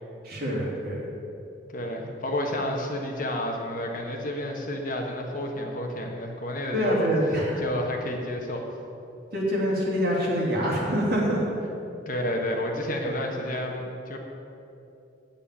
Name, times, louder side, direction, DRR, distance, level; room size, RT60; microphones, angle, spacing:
voice 1, 0.2-1.1 6.7-7.6 9.3-11.4, equal, 50° right, -4 dB, 3.3 m, -25 dB
voice 2, 1.7-7.1 7.6-8.7 12.0-14.2, left 1 dB, 45° left, 1 dB, 1.5 m, -30 dB
8.8 x 8.5 x 8.6 m, 2.7 s
head